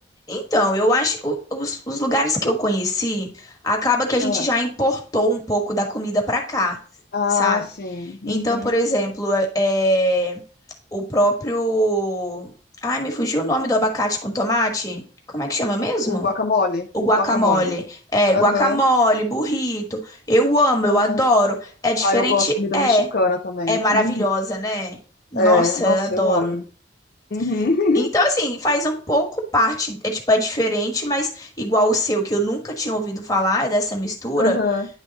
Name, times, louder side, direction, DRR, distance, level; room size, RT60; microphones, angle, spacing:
voice 1, 0.3-6.8 7.3-7.6 8.3-10.4 10.9-12.5 12.8-15.0 15.3-16.3 16.9-17.8 18.1-23.1 23.7-25.0 25.3-26.5 27.9-34.5, equal, 20° left, 1 dB, 1.4 m, -21 dB
voice 2, 7.1-8.8 16.0-16.9 17.2-17.7 18.3-18.8 20.8-21.2 22.0-24.2 25.3-26.6 27.3-28.1 34.3-34.9, left 3 dB, 50° left, 3 dB, 0.5 m, -23 dB
10.0 x 3.5 x 4.0 m, 0.40 s
head